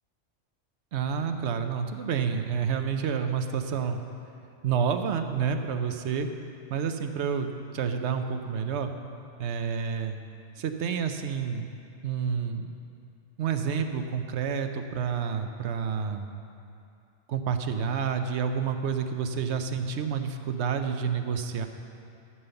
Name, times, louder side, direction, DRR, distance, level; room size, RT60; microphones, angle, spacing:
voice 1, 0.9-4.0 4.6-6.3 6.7-8.9 9.4-10.2 10.6-11.7 12.0-12.7 13.4-16.3 17.3-21.7, right 6 dB, 70° right, 7 dB, 0.9 m, -29 dB
12.5 x 5.6 x 6.9 m, 2.6 s
omnidirectional pair, 1.3 m